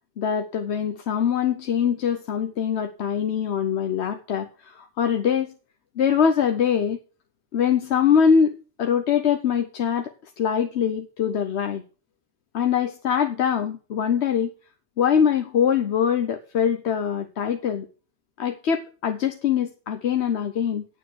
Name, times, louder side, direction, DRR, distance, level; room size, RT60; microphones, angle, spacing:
voice 1, 0.2-4.5 4.8-5.5 6.0-7.0 7.5-8.5 8.8-10.1 10.4-11.8 12.5-14.5 15.0-17.9 18.4-20.8, left 7 dB, 75° left, 7 dB, 1.1 m, -23 dB
9.0 x 7.1 x 6.4 m, 0.37 s
omnidirectional pair, 1.1 m